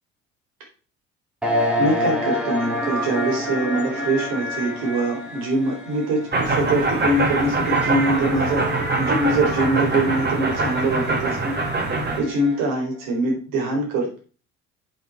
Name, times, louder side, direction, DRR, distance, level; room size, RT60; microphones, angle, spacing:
sound 1, 1.4-12.8, left 1 dB, ahead, 2.1 m, -29 dB
voice 1, 1.8-8.7 8.9-11.6 12.2-14.2, right 2 dB, 55° right, 0 dB, 3.8 m, -23 dB
sound 2, 6.3-12.2, right 3 dB, 25° right, 2.2 m, -23 dB
8.7 x 5.8 x 4.4 m, 0.38 s
figure-of-eight pair, 60°, 39 cm